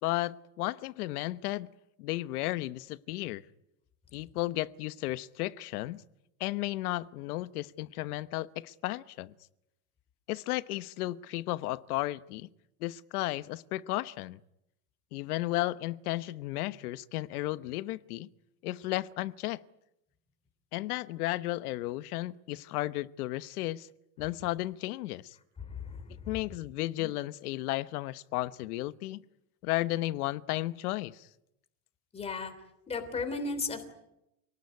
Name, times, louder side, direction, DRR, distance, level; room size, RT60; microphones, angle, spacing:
voice 1, 0.0-1.7 2.0-3.4 4.1-6.0 6.4-9.3 10.3-12.5 12.8-14.4 15.1-18.3 18.6-19.6 20.7-23.9 24.2-25.4 26.3-29.2 29.6-31.3, left 17 dB, 80° left, 1.1 m, -34 dB
voice 2, 25.6-26.3 32.1-32.5 32.9-33.9, left 4 dB, 15° left, 3.2 m, -35 dB
28.0 x 19.0 x 9.6 m
supercardioid pair, 170°, 44 cm